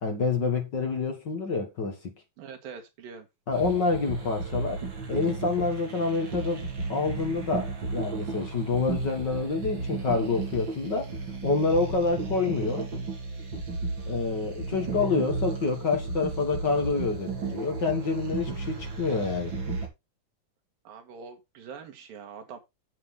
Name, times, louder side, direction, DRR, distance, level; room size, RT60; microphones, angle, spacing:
voice 1, 0.0-2.1 3.5-11.1 11.4-12.9 14.1-19.5, left 4 dB, 45° left, 1.5 m, -27 dB
voice 2, 2.4-3.3 20.8-22.6, right 6 dB, 80° right, 3.3 m, -43 dB
sound 1, 3.5-19.9, right 4 dB, 35° right, 3.0 m, -34 dB
8.7 x 8.1 x 3.7 m
omnidirectional pair, 4.1 m